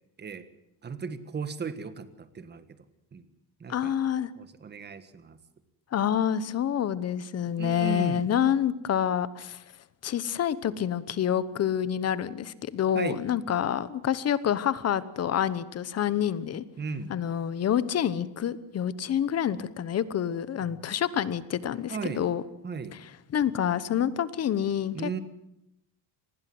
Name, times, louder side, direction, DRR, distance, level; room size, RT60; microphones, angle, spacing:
voice 1, 0.8-2.6 3.1-3.3 3.6-4.0 4.4-5.4 7.6-8.3 12.9-13.2 16.8-17.1 21.9-22.2 22.6-23.0 24.9-25.2, right 5 dB, 25° right, 12 dB, 1.6 m, -35 dB
voice 2, 3.7-4.3 5.9-9.6 10.0-16.6 17.1-22.4 22.9-25.2, left 9 dB, 35° left, 16 dB, 1.1 m, -28 dB
26.0 x 20.0 x 7.8 m, 0.84 s
cardioid pair, 170°, 42 cm